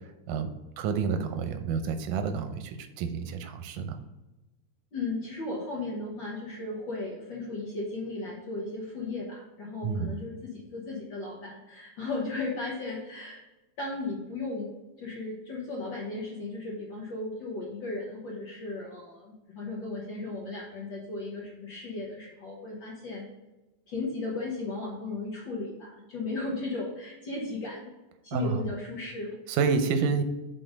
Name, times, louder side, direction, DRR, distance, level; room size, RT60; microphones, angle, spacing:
voice 1, 0.3-4.0 9.8-10.1 28.3-28.6 29.5-30.2, right 5 dB, 90° right, 8 dB, 2.3 m, -29 dB
voice 2, 4.9-13.4 13.8-14.7 15.0-23.3 23.9-27.9 28.2-29.4, left 3 dB, 55° left, -4 dB, 1.4 m, -35 dB
6.8 x 3.9 x 5.1 m, 1.0 s
omnidirectional pair, 3.5 m